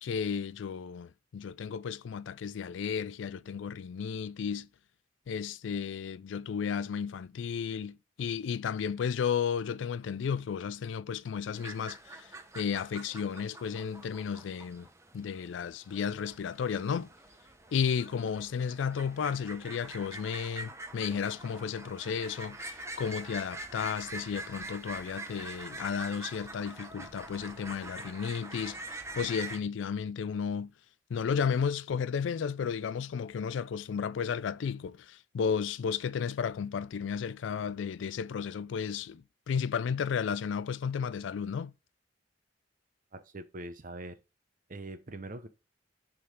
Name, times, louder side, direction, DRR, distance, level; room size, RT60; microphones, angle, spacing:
voice 1, 0.0-4.7 5.3-14.9 15.1-17.1 17.7-28.8 29.2-30.7 31.1-41.7, left 7 dB, 75° left, 0.3 m, -33 dB
sound 1, 11.5-29.6, right 2 dB, 15° right, 0.8 m, -45 dB
voice 2, 43.1-44.2 44.7-45.5, right 2 dB, 45° right, 0.8 m, -42 dB
6.8 x 3.8 x 4.7 m
head